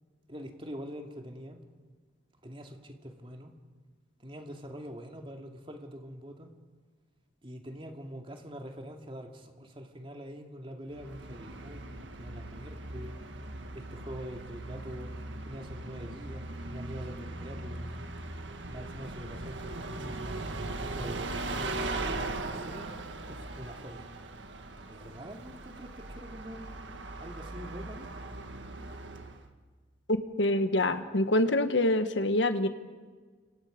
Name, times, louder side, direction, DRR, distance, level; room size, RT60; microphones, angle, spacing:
voice 1, 0.3-1.6 2.4-3.5 4.2-6.5 7.4-13.2 13.7-15.1 15.4-18.0 18.7-20.4 20.9-24.1 24.8-26.7 27.2-28.1, equal, 30° right, 3 dB, 2.4 m, -44 dB
Bus, 10.9-29.5, right 2 dB, 75° right, 1.8 m, -39 dB
voice 2, 30.1-32.7, left 1 dB, 70° left, 9 dB, 1.4 m, -26 dB
30.0 x 26.5 x 5.2 m, 1.5 s
head